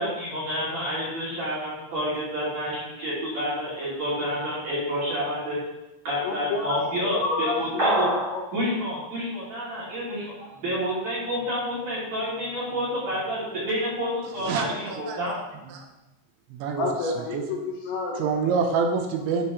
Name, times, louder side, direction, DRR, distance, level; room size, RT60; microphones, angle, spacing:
voice 1, 0.0-5.6 6.1-8.1 8.5-15.4, equal, 40° right, -8 dB, 3.4 m, -29 dB
voice 2, 6.2-7.6 7.9-8.0 8.3-8.4 16.7-18.3, left 3 dB, 75° left, -2 dB, 2.7 m, -29 dB
sound 1, 7.8-8.4, right 1 dB, 25° right, 2.2 m, -23 dB
voice 3, 14.4-15.2 15.7-15.9 16.5-16.9 17.3-17.5 18.2-19.5, right 5 dB, 90° right, 4 dB, 3.1 m, -26 dB
9.7 x 6.0 x 3.1 m, 0.98 s
omnidirectional pair, 5.3 m